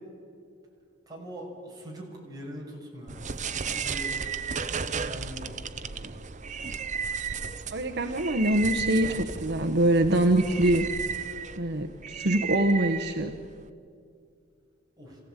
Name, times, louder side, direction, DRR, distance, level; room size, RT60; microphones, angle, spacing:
voice 1, 1.1-4.1 5.0-6.1 15.0-15.2, equal, 20° right, -3 dB, 6.2 m, -42 dB
sound 1, 3.1-13.7, right 6 dB, 35° right, 0.8 m, -34 dB
voice 2, 7.7-10.8 11.6-13.3, right 1 dB, 55° right, 4 dB, 1.1 m, -24 dB
27.0 x 16.0 x 9.0 m, 2.4 s
head